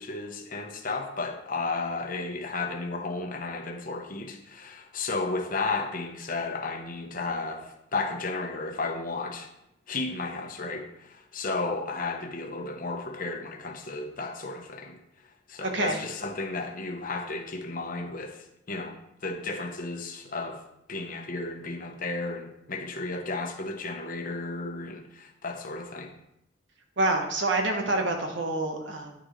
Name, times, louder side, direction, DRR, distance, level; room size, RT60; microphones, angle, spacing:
voice 1, 0.0-9.5 9.9-15.0 15.5-20.6 20.9-26.1, left 3 dB, 45° left, 1.0 m, -33 dB
voice 2, 15.6-16.0 27.0-29.1, right 2 dB, 75° right, 1.3 m, -27 dB
10.0 x 6.4 x 3.2 m
head